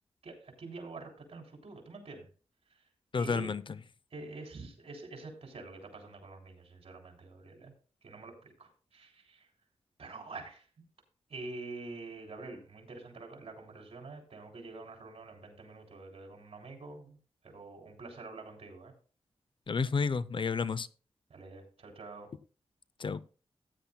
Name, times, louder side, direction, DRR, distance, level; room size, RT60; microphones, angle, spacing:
voice 1, 0.2-2.3 3.1-3.5 4.1-7.7 8.0-9.4 10.0-10.6 11.3-17.2 17.4-18.9 21.3-22.3, right 3 dB, 65° right, 2 dB, 3.4 m, -46 dB
voice 2, 3.1-3.8 19.7-20.9 23.0-23.2, left 5 dB, 50° left, 17 dB, 0.6 m, -31 dB
15.0 x 10.0 x 2.3 m, 0.36 s
cardioid pair, 65°, 11 cm